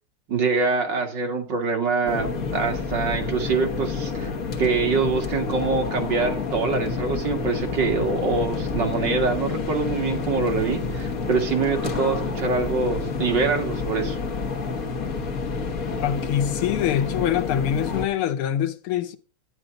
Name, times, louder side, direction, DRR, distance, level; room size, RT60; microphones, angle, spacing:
voice 1, 0.3-4.3 4.6-14.2, right 4 dB, 55° right, 2.5 m, -24 dB
sound 1, 2.1-18.1, left 4 dB, 45° left, 1.5 m, -29 dB
voice 2, 16.0-19.2, left 10 dB, 85° left, 1.8 m, -24 dB
11.0 x 10.0 x 3.8 m
omnidirectional pair, 2.4 m